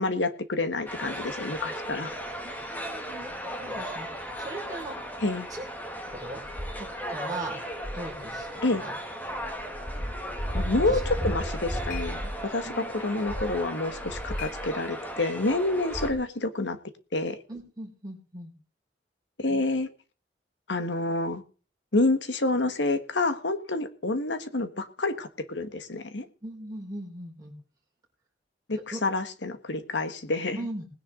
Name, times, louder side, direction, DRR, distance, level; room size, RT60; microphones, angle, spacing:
voice 1, 0.0-2.1 5.2-5.5 8.6-8.8 10.5-16.8 17.1-17.4 19.4-19.9 20.7-21.4 21.9-26.3 28.7-30.6, left 2 dB, 80° left, 10 dB, 1.6 m, -28 dB
sound 1, 0.9-16.1, equal, 10° left, 2.3 m, -35 dB
voice 2, 2.4-5.0 5.5-5.6 6.1-6.4 6.8-7.5 7.9-8.9 10.9-11.0 12.6-12.9 17.5-18.5 19.5-19.6 26.4-27.5 28.9-29.0 30.6-30.9, right 2 dB, 20° right, -3 dB, 5.4 m, -39 dB
sound 2, 11.1-15.4, left 10 dB, 50° left, 2.8 m, -49 dB
20.0 x 10.0 x 3.9 m, 0.37 s
head